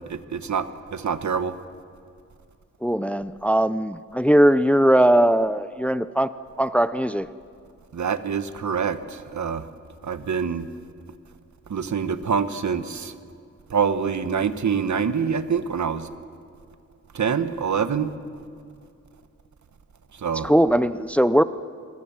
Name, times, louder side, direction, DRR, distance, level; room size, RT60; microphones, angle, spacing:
voice 1, 0.1-1.6 7.9-9.7 10.0-10.7 11.7-13.1 13.7-16.1 17.1-18.1 20.1-20.5, right 6 dB, 70° right, 10 dB, 1.3 m, -25 dB
voice 2, 2.8-6.3 6.6-7.3 20.4-21.4, right 1 dB, 5° left, 13 dB, 0.5 m, -19 dB
27.0 x 21.0 x 7.3 m, 2.4 s
wide cardioid pair, 105°, 30 cm